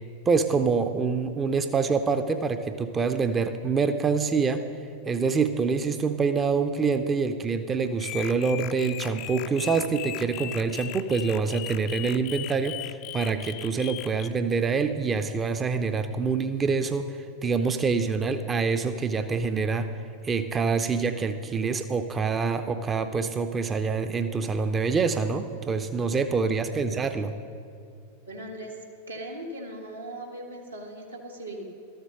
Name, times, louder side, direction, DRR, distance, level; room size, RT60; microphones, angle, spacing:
voice 1, 0.3-4.6 5.0-19.9 20.2-27.3, right 5 dB, 20° right, 8 dB, 0.5 m, -26 dB
sound 1, 8.0-14.3, left 14 dB, 40° left, 0.4 m, -38 dB
voice 2, 26.5-27.0 28.2-28.7 29.1-31.6, right 1 dB, 80° right, -1 dB, 1.7 m, -39 dB
12.5 x 8.0 x 6.4 m, 2.5 s
figure-of-eight pair, 90°, 0 cm